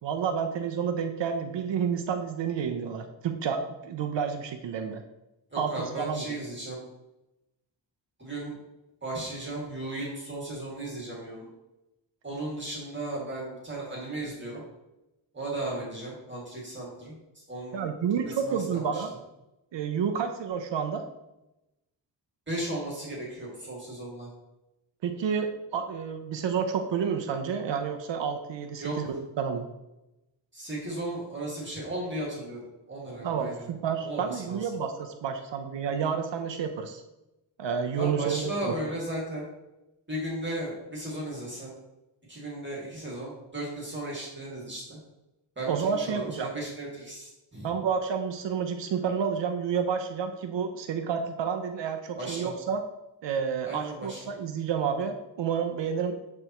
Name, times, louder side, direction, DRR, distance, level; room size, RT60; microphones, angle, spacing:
voice 1, 0.0-5.0 5.6-6.2 17.7-19.1 19.7-21.0 25.0-29.7 33.2-37.0 37.6-38.7 45.7-46.5 47.6-52.8 53.2-56.2, right 6 dB, 80° right, 6 dB, 0.7 m, -30 dB
voice 2, 5.5-6.8 8.2-8.6 9.0-11.5 12.2-14.6 15.3-17.8 18.2-19.0 22.5-24.3 28.8-29.0 30.5-32.6 32.9-33.7 34.0-34.7 37.9-39.5 40.1-41.7 42.3-45.0 45.6-47.7 52.2-52.5 53.6-54.2, right 1 dB, 25° right, -4 dB, 2.1 m, -35 dB
10.0 x 3.5 x 3.0 m, 0.95 s
wide cardioid pair, 105°, 44 cm